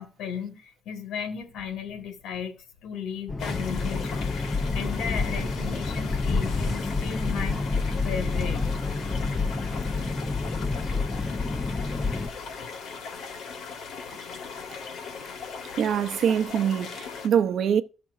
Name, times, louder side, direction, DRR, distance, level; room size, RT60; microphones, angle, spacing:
voice 1, 0.0-7.6 8.0-8.6, left 7 dB, 85° left, 2.0 m, -35 dB
sound 1, 3.3-12.3, left 3 dB, 15° left, 0.5 m, -28 dB
sound 2, 3.4-17.3, left 5 dB, 65° left, 2.0 m, -39 dB
sound 3, 6.2-12.6, equal, 10° right, 4.2 m, -45 dB
voice 2, 15.8-17.8, right 8 dB, 60° right, 0.7 m, -24 dB
14.5 x 6.0 x 2.6 m
cardioid pair, 145°, 0 cm